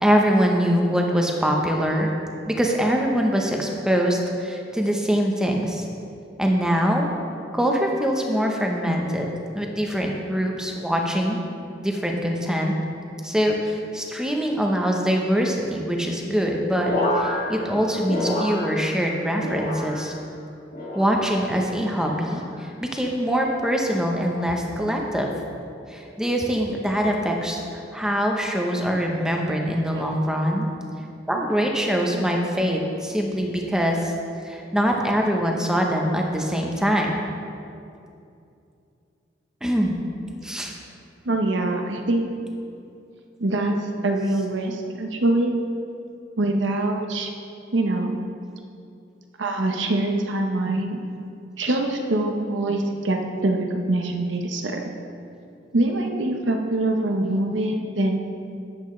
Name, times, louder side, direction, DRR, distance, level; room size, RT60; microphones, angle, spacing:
voice 1, 0.0-2.1 2.5-5.9 6.4-7.1 7.5-9.3 9.5-11.4 11.8-12.7 13.2-20.1 20.9-25.3 25.9-30.7 31.3-34.1 34.4-37.1 39.6-39.9 40.4-40.7, equal, 5° right, 0 dB, 0.8 m, -23 dB
sound 1, 16.9-19.1 19.4-20.2 20.7-21.4 22.0-22.5 23.4-23.8 24.7-25.0, left 1 dB, 55° left, 2.2 m, -29 dB
voice 2, 41.2-42.3 43.4-43.8 44.0-45.5 46.4-47.3 47.7-48.2 49.4-51.0 51.6-54.8 55.7-58.2, right 2 dB, 85° right, 3 dB, 0.9 m, -24 dB
10.5 x 7.9 x 3.2 m, 2.6 s
head